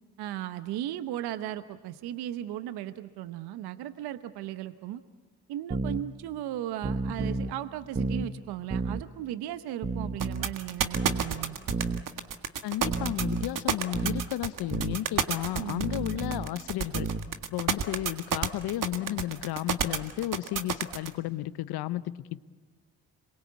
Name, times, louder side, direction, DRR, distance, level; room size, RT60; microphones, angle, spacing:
voice 1, 0.2-5.0 5.5-11.6 15.6-15.9, right 12 dB, 75° right, 12 dB, 0.9 m, -36 dB
sound 1, 5.7-6.0 6.8-7.5 8.0-8.3 8.7-9.0 9.8-10.5 10.9-11.3 11.7-12.0 12.8-13.5 13.9-14.3 14.7-15.0 15.8-16.5 16.9-17.3, right 4 dB, 25° right, 1.3 m, -31 dB
sound 2, 10.2-21.1, right 7 dB, 55° right, 1.8 m, -29 dB
voice 2, 12.6-17.1 17.5-22.0, left 14 dB, 70° left, 16 dB, 0.9 m, -33 dB
27.0 x 22.0 x 8.3 m, 1.4 s
hypercardioid pair, 45°, 39 cm